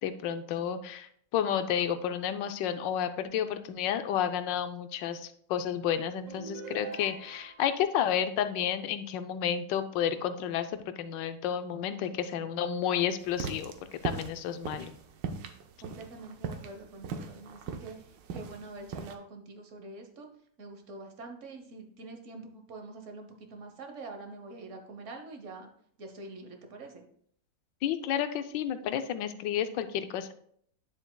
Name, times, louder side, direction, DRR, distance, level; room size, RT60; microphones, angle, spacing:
voice 1, 0.0-14.9 27.8-30.3, left 9 dB, 85° left, 10 dB, 1.3 m, -31 dB
sound 1, 6.3-7.7, right 5 dB, 65° right, 1.5 m, -44 dB
sound 2, 13.3-19.1, right 6 dB, 80° right, 1.4 m, -38 dB
voice 2, 15.8-20.3 20.6-25.7 26.0-27.0, right 3 dB, 50° right, 4 dB, 1.2 m, -45 dB
9.5 x 7.1 x 2.2 m, 0.65 s
omnidirectional pair, 1.9 m